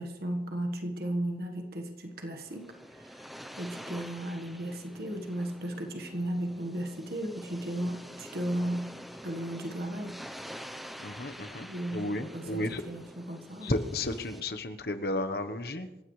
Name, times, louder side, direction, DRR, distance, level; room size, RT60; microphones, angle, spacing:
voice 1, 0.0-3.3 3.6-8.9 9.2-11.0 11.7-13.7, right 1 dB, 55° right, 3 dB, 1.5 m, -35 dB
sound 1, 2.1-14.4, equal, ahead, 0.7 m, -47 dB
voice 2, 11.0-12.8 13.6-15.9, left 1 dB, 60° left, 7 dB, 1.1 m, -33 dB
27.0 x 15.5 x 3.3 m, 1.1 s
head